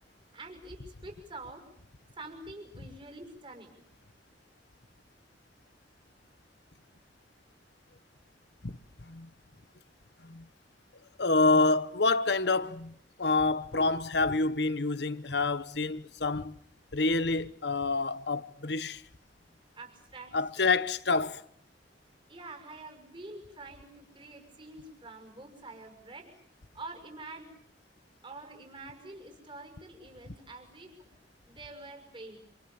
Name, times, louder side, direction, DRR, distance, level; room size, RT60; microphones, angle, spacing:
voice 1, 0.3-1.7 2.2-3.7 13.7-13.9 14.3-14.4 19.8-20.6 22.3-26.3 26.7-27.5 28.2-31.1 31.4-32.4, right 2 dB, 30° right, 6.0 m, -46 dB
voice 2, 8.6-9.3 10.2-10.5 11.2-16.6 16.9-19.0 20.3-21.4, left 3 dB, 65° left, 1.2 m, -28 dB
27.5 x 27.5 x 7.2 m
head